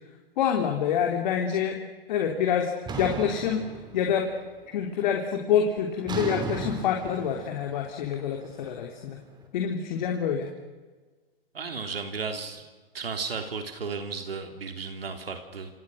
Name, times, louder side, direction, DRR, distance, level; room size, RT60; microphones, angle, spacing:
voice 1, 0.4-1.8 2.1-2.7 3.0-3.6 3.9-4.3 4.7-9.2 9.5-10.5, left 8 dB, 50° left, 3 dB, 3.4 m, -26 dB
sound 1, 2.9-4.4 4.7-5.2 6.1-9.1, right 4 dB, 15° right, 3.3 m, -36 dB
voice 2, 11.5-12.6 12.9-15.7, right 5 dB, 80° right, 6 dB, 3.1 m, -34 dB
28.5 x 25.5 x 6.5 m, 1.3 s
hypercardioid pair, 125°, 29 cm